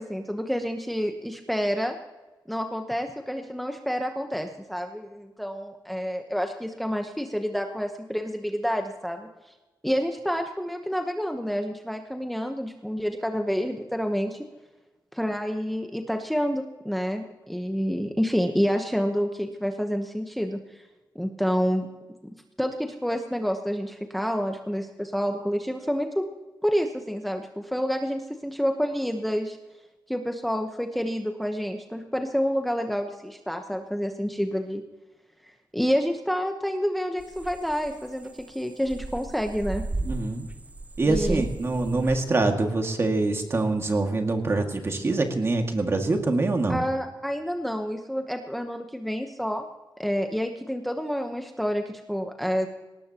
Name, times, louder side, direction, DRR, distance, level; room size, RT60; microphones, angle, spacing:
voice 1, 0.0-1.9 2.5-9.3 9.8-14.4 15.1-20.8 21.1-21.9 22.6-26.2 26.6-29.6 30.1-34.8 35.7-39.8 41.0-41.4 46.7-49.6 50.0-52.7, equal, ahead, 4 dB, 1.0 m, -28 dB
sound 1, 37.2-42.2, right 2 dB, 20° right, 0.5 m, -35 dB
voice 2, 40.0-40.5 41.0-46.8, right 2 dB, 35° right, 4 dB, 2.1 m, -25 dB
19.5 x 18.5 x 2.9 m, 1.1 s
wide cardioid pair, 120°, 8 cm